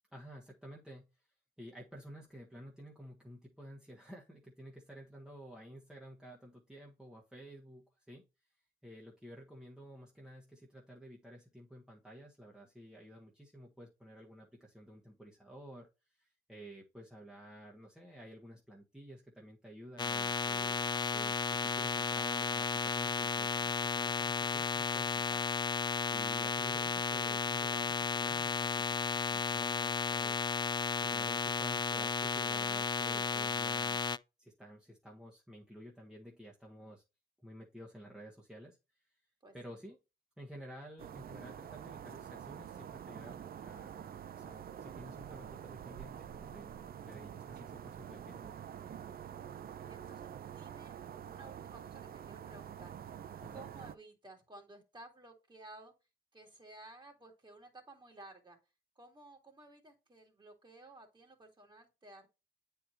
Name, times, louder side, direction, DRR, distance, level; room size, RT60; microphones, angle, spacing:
voice 1, 0.1-1.2 1.6-8.2 8.8-25.4 26.1-30.5 31.0-34.1 34.4-37.0 37.4-39.2 39.5-40.0 40.4-48.6 53.4-53.7, equal, 5° right, -3 dB, 1.6 m, -52 dB
sound 1, 20.0-34.2, left 5 dB, 20° left, 0.3 m, -34 dB
sound 2, 41.0-54.0, right 9 dB, 50° right, 0.6 m, -47 dB
voice 2, 49.9-50.9 51.2-52.9 53.5-55.9 56.3-58.6 59.0-62.3, right 2 dB, 20° right, 3 dB, 2.5 m, -55 dB
8.6 x 4.7 x 2.7 m, 0.27 s
cardioid pair, 90°, 20 cm